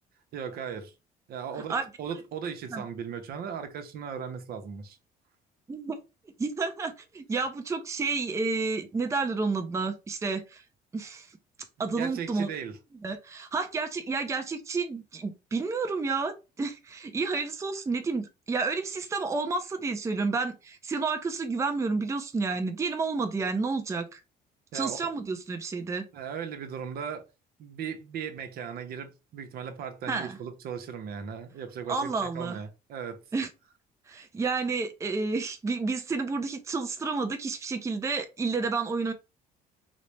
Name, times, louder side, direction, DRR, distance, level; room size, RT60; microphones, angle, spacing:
voice 1, 0.3-0.9 1.3-5.0 11.8-12.8 24.7-25.1 26.1-27.3 27.6-33.2, right 7 dB, 65° right, 0.7 m, -37 dB
voice 2, 5.7-6.0 6.4-10.6 10.9-11.3 11.8-12.5 13.0-24.2 24.7-26.1 30.1-30.4 31.9-32.6 33.3-33.5 34.1-39.1, right 4 dB, 15° right, 0.5 m, -30 dB
4.0 x 2.1 x 3.1 m
cardioid pair, 110°, 17 cm